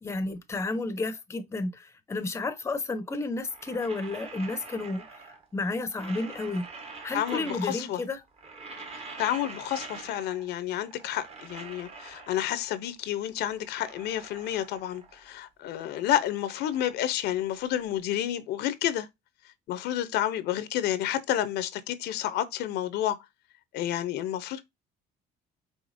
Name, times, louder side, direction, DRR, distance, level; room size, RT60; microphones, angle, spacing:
voice 1, 0.0-6.7 7.0-8.2, left 2 dB, 15° left, 0.6 m, -32 dB
sound 1, 3.3-5.5 5.8-8.0 8.3-10.5 10.8-12.9 13.3-15.3 15.6-17.8, right 4 dB, 35° right, 1.0 m, -45 dB
voice 2, 7.1-8.0 8.9-19.1 19.7-23.2 23.7-24.6, left 12 dB, 80° left, 0.6 m, -30 dB
4.9 x 3.3 x 2.5 m
cardioid pair, 110°, 17 cm